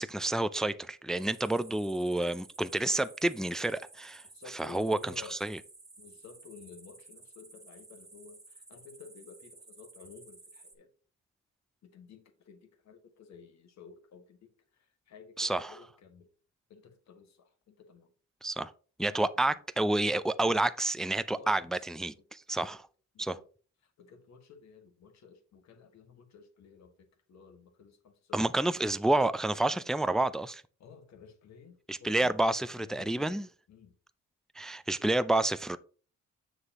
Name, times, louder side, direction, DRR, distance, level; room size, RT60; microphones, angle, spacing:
voice 1, 0.0-4.2 4.6-5.6 15.4-15.8 18.4-18.7 19.0-22.8 23.2-23.4 28.3-30.6 31.9-33.5 34.6-35.8, right 2 dB, ahead, 0.3 m, -29 dB
sound 1, 1.2-10.7, right 3 dB, 20° right, 1.3 m, -54 dB
voice 2, 4.2-5.4 6.0-10.9 11.8-16.3 16.7-18.1 19.0-19.6 21.4-22.3 22.5-22.8 23.1-23.4 23.8-28.9 30.8-32.4 32.6-33.3 33.7-34.0, left 5 dB, 65° left, 1.6 m, -53 dB
7.3 x 6.6 x 2.9 m
cardioid pair, 90°, 30 cm